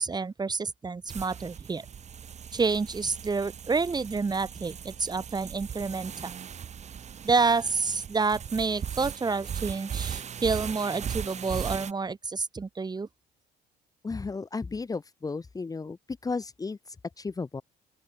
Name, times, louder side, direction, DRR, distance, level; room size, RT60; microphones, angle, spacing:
voice 1, 0.0-1.9 2.5-6.4 7.2-13.1, right 4 dB, 25° right, 5.6 m, -28 dB
sound 1, 1.1-11.9, right 8 dB, 45° right, 2.5 m, -38 dB
voice 2, 14.0-16.0 16.2-17.6, left 4 dB, 20° left, 1.9 m, -34 dB
open air
cardioid pair, 110°, 17 cm